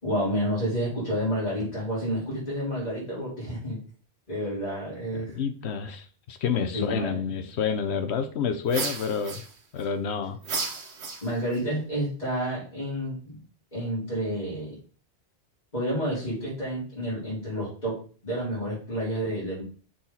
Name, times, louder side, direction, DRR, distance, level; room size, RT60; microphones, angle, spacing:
voice 1, 0.0-3.8 4.3-5.4 6.7-7.2 11.2-13.4 13.7-14.8 15.7-19.6, equal, 40° left, -9 dB, 3.8 m, -30 dB
voice 2, 5.1-9.4 9.7-10.4, left 6 dB, 80° left, 10 dB, 1.0 m, -29 dB
sound 1, 8.7-9.8 10.4-11.6, right 4 dB, 85° right, 1.3 m, -33 dB
6.4 x 4.3 x 4.0 m, 0.39 s
omnidirectional pair, 1.1 m